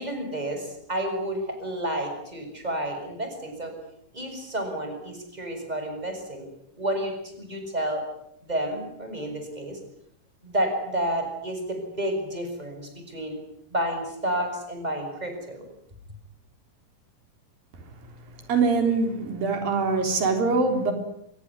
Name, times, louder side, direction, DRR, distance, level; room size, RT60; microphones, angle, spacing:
voice 1, 0.0-3.7 4.1-6.5 6.8-8.0 8.4-9.8 10.4-13.4 13.7-15.6, right 1 dB, 10° right, 5 dB, 6.6 m, -30 dB
voice 2, 18.5-20.9, right 4 dB, 85° right, 5 dB, 5.5 m, -23 dB
25.0 x 21.5 x 9.7 m, 0.76 s
omnidirectional pair, 4.0 m